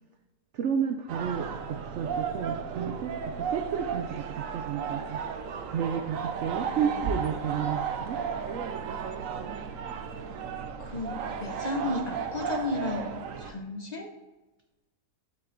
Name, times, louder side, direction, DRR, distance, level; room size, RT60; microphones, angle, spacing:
voice 1, 0.5-5.2 5.7-8.2, right 7 dB, 80° right, 6 dB, 0.6 m, -32 dB
sound 1, 1.1-13.5, right 6 dB, 60° right, 0.9 m, -34 dB
voice 2, 6.7-7.1 10.8-14.1, left 2 dB, 55° left, 2 dB, 0.4 m, -34 dB
7.8 x 5.7 x 3.8 m, 1.1 s
omnidirectional pair, 1.8 m